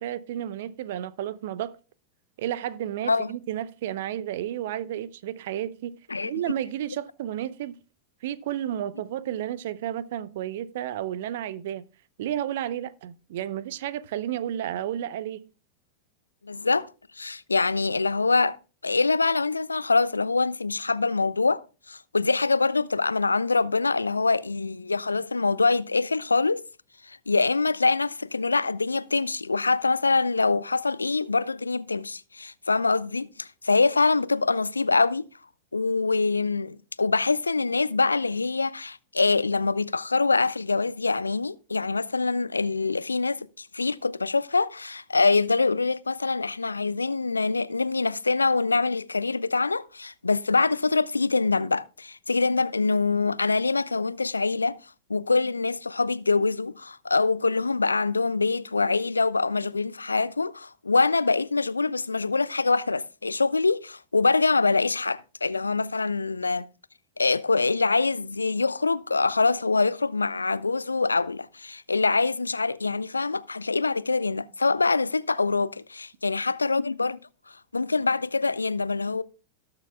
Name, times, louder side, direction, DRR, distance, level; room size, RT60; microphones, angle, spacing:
voice 1, 0.0-1.8 2.4-5.9 6.2-7.8 8.2-11.8 12.2-15.5, right 11 dB, 55° right, 0.5 m, -32 dB
voice 2, 16.4-16.9 17.2-18.6 18.8-26.6 27.1-35.3 35.7-54.8 55.1-66.7 67.2-77.2 77.7-79.2, left 3 dB, 80° left, 0.3 m, -24 dB
18.0 x 6.7 x 2.3 m
figure-of-eight pair, 90°, 0 cm